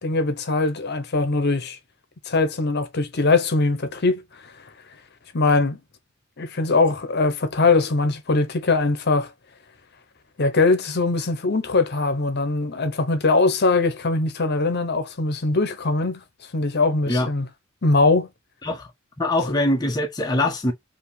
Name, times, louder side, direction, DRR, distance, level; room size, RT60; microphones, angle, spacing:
voice 1, 0.0-1.8 2.3-4.2 5.3-5.8 6.4-9.3 10.4-16.2 16.5-17.5 17.8-18.3 19.5-19.6, left 3 dB, 55° left, 0.8 m, -21 dB
voice 2, 19.2-20.7, left 1 dB, 20° left, 0.7 m, -23 dB
4.8 x 2.8 x 3.2 m
head